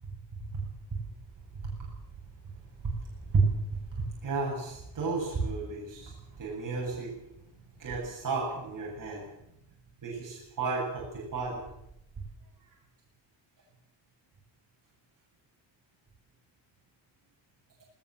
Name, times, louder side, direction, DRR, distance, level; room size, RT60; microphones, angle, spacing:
voice 1, 0.3-0.6 0.9-1.0 1.5-1.7 2.8-3.0 3.3-7.2 7.8-9.3 10.0-11.6, right 4 dB, 45° right, -3 dB, 7.8 m, -32 dB
21.0 x 19.5 x 7.8 m, 0.81 s
wide cardioid pair, 165°, 46 cm